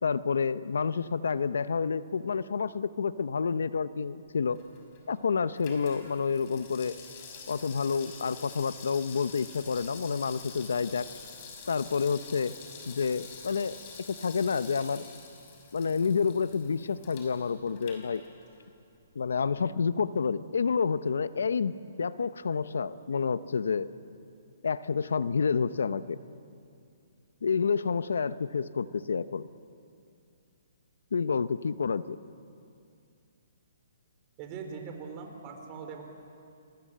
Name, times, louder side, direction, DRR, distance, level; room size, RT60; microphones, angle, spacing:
voice 1, 0.0-4.6 5.1-6.9 7.5-11.1 11.7-12.5 12.9-13.8 14.1-15.1 15.7-18.2 19.1-23.9 24.6-26.2 27.4-29.4 31.1-32.2, left 5 dB, 85° left, 14 dB, 0.8 m, -29 dB
Water tap faucet / Sink (filling or washing), 4.4-18.7 19.0-19.1, left 5 dB, 35° left, 6.1 m, -48 dB
voice 2, 34.4-36.0, right 5 dB, 30° right, 4 dB, 4.0 m, -41 dB
29.5 x 21.5 x 7.6 m, 2.4 s
hypercardioid pair, 155°, 0 cm